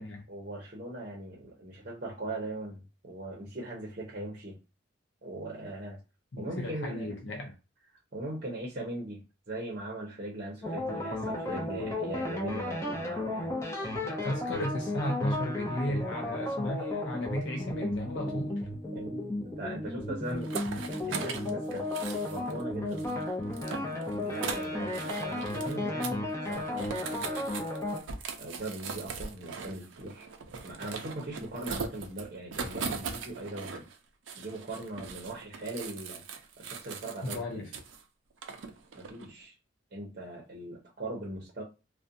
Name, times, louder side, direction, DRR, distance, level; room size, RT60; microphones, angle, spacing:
voice 1, 0.3-4.6 5.2-6.0 6.4-7.2 8.1-13.6 18.9-21.9 22.1-27.5 28.4-30.3 30.6-33.9 34.4-37.7 38.9-39.5 39.9-41.6, right 1 dB, 50° right, 0.7 m, -40 dB
voice 2, 6.3-7.5 14.0-18.6 37.2-37.7, left 1 dB, 70° left, 0.5 m, -35 dB
sound 1, 10.6-28.0, left 1 dB, 15° left, 0.6 m, -34 dB
sound 2, 20.3-22.6 22.9-25.8 26.0-26.2 26.4-34.0 34.3-38.0 38.4-39.3, right 5 dB, 90° right, 0.5 m, -40 dB
2.5 x 2.2 x 2.5 m
head